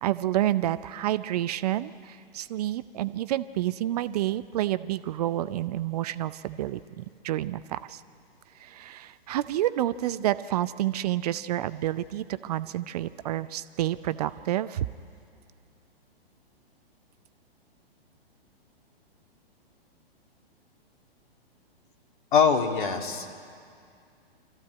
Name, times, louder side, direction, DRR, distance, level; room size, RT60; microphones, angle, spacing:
voice 1, 0.0-8.0 8.6-14.9, right 13 dB, 40° right, 14 dB, 0.6 m, -29 dB
voice 2, 22.3-23.4, left 6 dB, 55° left, 4 dB, 2.2 m, -23 dB
24.0 x 14.5 x 9.3 m, 2.3 s
figure-of-eight pair, 115°, 30 cm